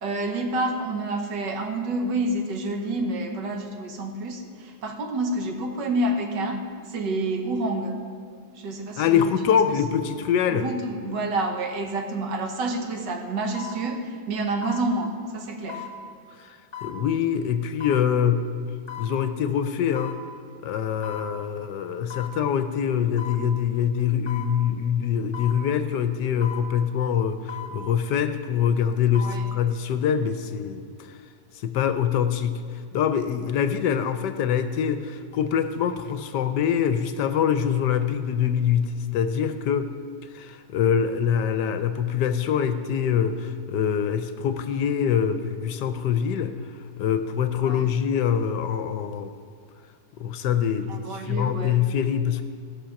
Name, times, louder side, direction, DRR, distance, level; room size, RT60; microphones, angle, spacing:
voice 1, 0.0-6.6 6.9-8.0 8.5-9.8 10.5-15.9 29.2-29.5 47.6-47.9 50.9-51.8, right 2 dB, 70° right, 4 dB, 1.7 m, -28 dB
voice 2, 9.0-10.7 16.3-18.4 19.0-20.2 20.6-31.2 31.5-39.9 40.2-49.3 50.2-52.4, left 8 dB, 75° left, 10 dB, 1.1 m, -24 dB
sound 1, 12.4-12.5 13.5-13.8 14.6-14.9 15.7-15.9 16.7-17.0 17.8-18.0 18.9-19.1 20.0-20.2 21.0-21.3 22.1-22.4 23.2-23.4 24.3-24.5 25.3-25.6 26.4-26.7 27.5-27.7 28.9-29.4 29.8-29.9, left 8 dB, 35° left, 1.2 m, -37 dB
16.5 x 6.3 x 5.7 m, 2.1 s
omnidirectional pair, 2.0 m